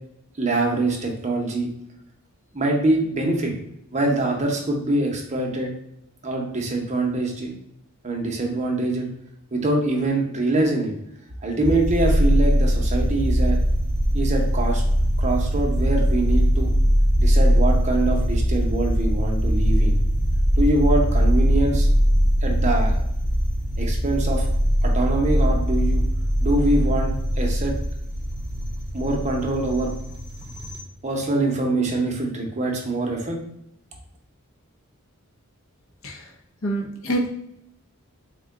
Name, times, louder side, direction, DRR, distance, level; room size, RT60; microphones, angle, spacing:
voice 1, 0.4-1.7 2.5-3.5 3.9-5.7 6.2-7.5 8.0-9.1 9.5-10.9 11.4-13.6 14.1-14.8 15.2-16.7 17.2-20.0 20.6-21.9 22.4-23.0 23.8-24.5 24.8-26.0 26.4-27.1 27.4-27.7 28.9-29.9 31.0-33.4, right 2 dB, 30° right, 1 dB, 0.6 m, -24 dB
sound 1, 11.6-30.8, equal, 35° left, 1.0 m, -21 dB
voice 2, 36.6-37.3, right 1 dB, 65° left, 0 dB, 0.6 m, -26 dB
3.6 x 2.2 x 3.6 m, 0.78 s
head